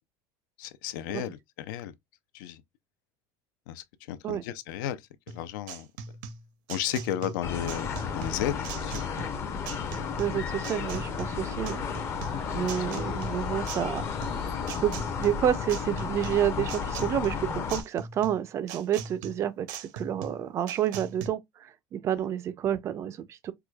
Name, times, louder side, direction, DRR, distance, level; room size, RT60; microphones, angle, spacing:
voice 1, 0.6-1.9 2.3-2.6 3.7-5.9 6.7-9.1, left 11 dB, 90° left, 0.5 m, -34 dB
sound 1, 5.3-21.3, right 5 dB, 80° right, 0.6 m, -41 dB
sound 2, 7.4-17.8, left 6 dB, 25° left, 0.5 m, -33 dB
sound 3, 7.6-15.5, left 6 dB, 55° left, 0.9 m, -50 dB
voice 2, 10.2-11.8 12.5-14.1 14.8-14.9 15.2-23.5, right 10 dB, 30° right, 0.3 m, -29 dB
4.7 x 2.2 x 2.2 m
cardioid pair, 165°, 10 cm